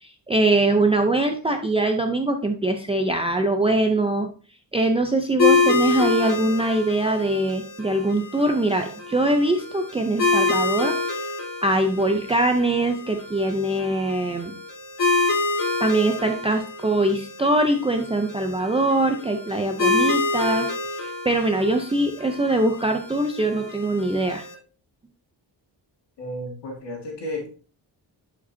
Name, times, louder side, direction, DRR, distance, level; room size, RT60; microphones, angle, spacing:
voice 1, 0.0-4.3 4.7-11.4 11.6-14.5 15.8-20.7 21.0-24.4, right 2 dB, 15° right, 4 dB, 0.5 m, -22 dB
sound 1, 5.4-24.5, left 3 dB, 45° left, 3.3 m, -27 dB
voice 2, 26.2-27.5, left 1 dB, 75° left, 0 dB, 2.0 m, -32 dB
11.0 x 5.2 x 2.7 m, 0.38 s
wide cardioid pair, 165°, 42 cm